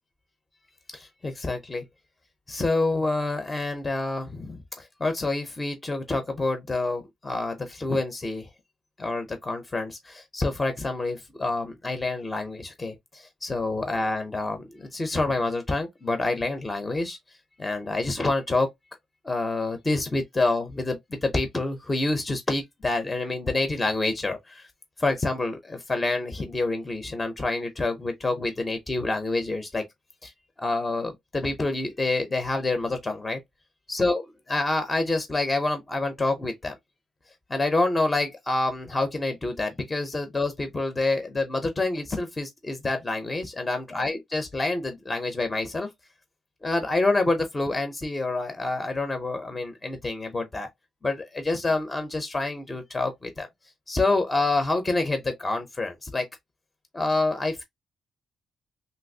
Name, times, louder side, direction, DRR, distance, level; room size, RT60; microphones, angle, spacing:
voice 1, 0.9-1.8 2.5-8.5 9.0-17.2 17.6-18.7 19.2-24.7 25.0-29.8 30.2-30.3 30.6-33.4 33.9-34.2 34.5-36.7 37.5-45.9 46.6-50.7 51.0-53.5 53.9-56.3 56.9-57.6, left 2 dB, 15° left, 0.5 m, -27 dB
3.1 x 2.8 x 2.6 m
cardioid pair, 170°, 0 cm